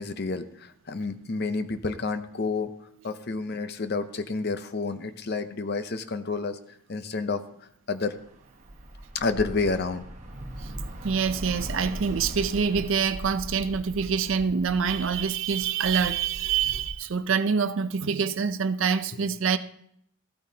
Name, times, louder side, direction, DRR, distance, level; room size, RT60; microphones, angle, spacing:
voice 1, 0.0-2.7 3.0-6.6 6.9-7.4 7.9-8.1 9.1-10.1, left 3 dB, 45° left, 0.6 m, -29 dB
Bus / Traffic noise roadway noise, 8.1-16.9, right 1 dB, 35° right, 1.2 m, -39 dB
voice 2, 11.0-19.6, right 6 dB, 60° right, 0.5 m, -26 dB
15.0 x 9.0 x 2.8 m
head